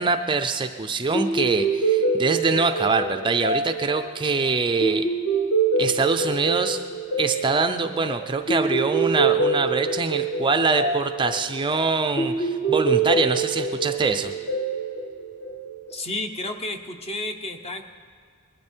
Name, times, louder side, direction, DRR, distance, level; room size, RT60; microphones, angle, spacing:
voice 1, 0.0-5.1 5.8-6.8 7.2-14.3, right 4 dB, 20° right, 7 dB, 0.5 m, -24 dB
sound 1, 1.1-15.9, right 3 dB, 45° left, 1.5 m, -25 dB
voice 2, 15.9-17.8, left 2 dB, 30° left, 6 dB, 1.0 m, -31 dB
20.5 x 12.0 x 4.5 m, 2.1 s
head